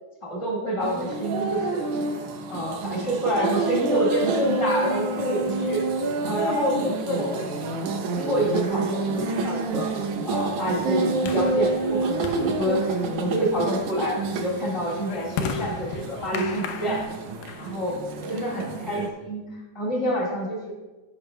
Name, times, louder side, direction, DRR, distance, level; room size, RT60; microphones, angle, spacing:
voice 1, 0.2-1.8 2.5-5.8 6.2-7.5 8.1-9.9 10.2-17.0 17.5-18.0 18.3-19.4 19.7-20.7, equal, 20° left, -4 dB, 0.9 m, -27 dB
sound 1, 0.8-19.1, right 3 dB, 85° right, 1.3 m, -28 dB
sound 2, 8.7-18.9, left 5 dB, 85° left, 2.1 m, -38 dB
12.5 x 5.7 x 2.2 m, 1.2 s
omnidirectional pair, 3.5 m